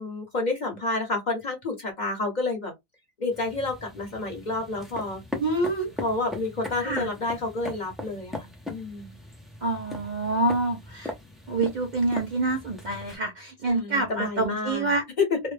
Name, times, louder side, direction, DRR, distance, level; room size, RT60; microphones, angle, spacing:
voice 1, 0.0-2.7 3.2-5.2 6.0-9.1 13.7-14.9 15.2-15.4, left 3 dB, 45° left, 0.8 m, -29 dB
sound 1, 3.3-13.2, left 2 dB, ahead, 0.3 m, -40 dB
voice 2, 5.4-5.9 6.8-7.1 9.6-11.1 11.5-15.0, right 2 dB, 50° right, 0.6 m, -27 dB
2.2 x 2.0 x 3.2 m
omnidirectional pair, 1.2 m